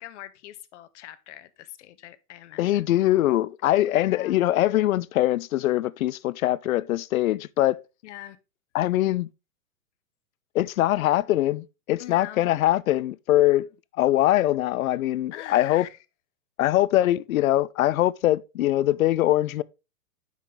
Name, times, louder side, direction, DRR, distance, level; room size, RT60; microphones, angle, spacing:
voice 1, 0.0-2.9 4.0-4.4 8.0-8.4 12.0-12.5 15.3-16.0, left 13 dB, 50° left, 0.9 m, -42 dB
voice 2, 2.6-7.8 8.7-9.3 10.5-13.7 14.0-15.9 16.6-19.6, left 14 dB, 65° left, 0.6 m, -22 dB
8.3 x 5.9 x 3.3 m
hypercardioid pair, 130°, 45 cm